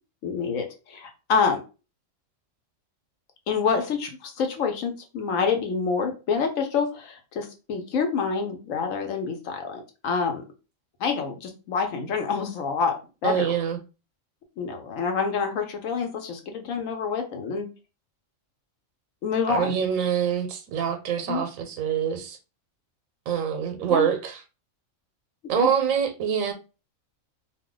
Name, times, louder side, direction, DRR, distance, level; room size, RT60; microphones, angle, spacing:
voice 1, 0.2-1.6 3.5-10.4 11.0-13.5 14.6-17.7 19.2-19.8 21.3-21.4 23.9-24.1 25.5-25.7, left 5 dB, 80° left, 1.1 m, -27 dB
voice 2, 13.2-13.8 19.5-22.4 23.3-24.4 25.5-26.5, right 8 dB, 90° right, 1.0 m, -25 dB
2.6 x 2.2 x 3.6 m
omnidirectional pair, 1.4 m